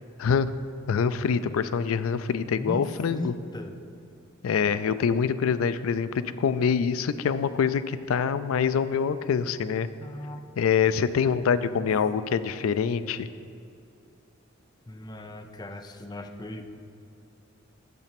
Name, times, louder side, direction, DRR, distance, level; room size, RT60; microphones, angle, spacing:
voice 1, 0.2-0.5 0.9-3.3 4.4-9.9 10.6-13.3, left 6 dB, 85° left, 14 dB, 0.4 m, -25 dB
voice 2, 2.5-3.8 10.0-10.5 14.9-16.6, left 1 dB, 20° left, 6 dB, 0.5 m, -37 dB
7.3 x 6.8 x 5.9 m, 2.6 s
head